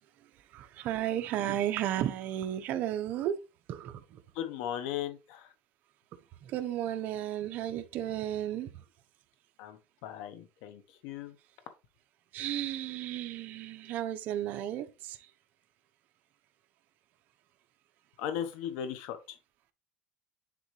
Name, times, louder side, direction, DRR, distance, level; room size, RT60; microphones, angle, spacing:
voice 1, 0.5-3.4 3.7-4.2 6.4-8.7 12.3-15.3, right 11 dB, 55° right, 1.0 m, -33 dB
voice 2, 4.3-5.5 9.6-11.4 18.2-19.4, left 10 dB, 80° left, 1.2 m, -37 dB
10.0 x 3.9 x 3.2 m
cardioid pair, 130°, 3 cm